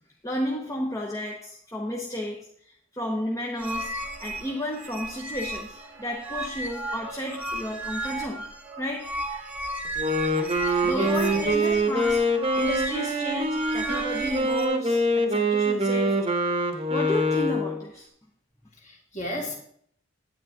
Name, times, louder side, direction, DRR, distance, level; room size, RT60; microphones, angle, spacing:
voice 1, 0.2-2.5 2.9-8.5 8.8-9.2 10.8-16.4 16.9-18.1, left 1 dB, 15° left, 0 dB, 0.9 m, -32 dB
sound 1, 3.6-14.7, right 1 dB, 5° right, 1.2 m, -34 dB
Wind instrument woodwind instrument, 9.8-17.8, right 1 dB, 25° right, 1.0 m, -25 dB
voice 2, 10.9-11.5 18.8-19.6, left 1 dB, 35° left, -1 dB, 2.5 m, -34 dB
9.2 x 9.0 x 3.9 m, 0.62 s
head